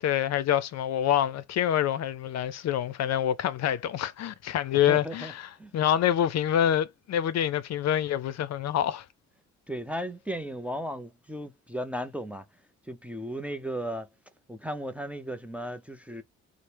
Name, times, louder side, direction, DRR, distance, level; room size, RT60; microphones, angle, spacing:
voice 1, 0.0-5.3 5.7-9.0, left 10 dB, 60° left, 0.5 m, -26 dB
voice 2, 4.9-5.3 5.6-5.7 9.7-12.5 12.8-14.1 14.5-16.2, equal, 5° right, 0.4 m, -35 dB
4.0 x 2.0 x 3.2 m
cardioid pair, 90°, 30 cm